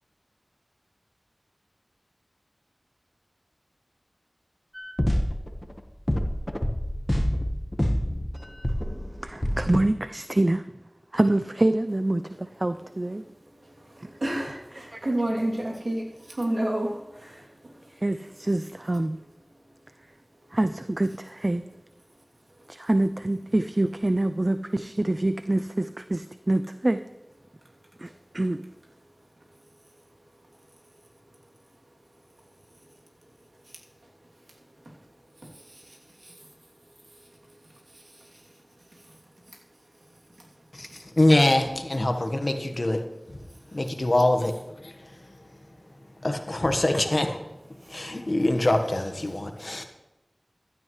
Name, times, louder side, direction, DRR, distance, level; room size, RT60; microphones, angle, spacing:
sound 1, 4.7-5.8 6.1-9.8, equal, 20° left, 1.3 m, -27 dB
voice 1, 9.2-10.6 11.1-13.2 14.9-15.1 18.0-19.2 20.5-21.6 22.7-27.0 28.0-28.6, right 1 dB, 45° right, 11 dB, 0.4 m, -26 dB
voice 2, 14.2-17.4, right 1 dB, 80° right, -3 dB, 2.8 m, -29 dB
voice 3, 40.7-43.0 43.3-43.4 43.7-44.9 46.2-47.4 47.9-49.8, left 1 dB, 55° left, 6 dB, 1.3 m, -24 dB
15.5 x 12.0 x 3.2 m, 0.98 s
wide cardioid pair, 40°, 0 cm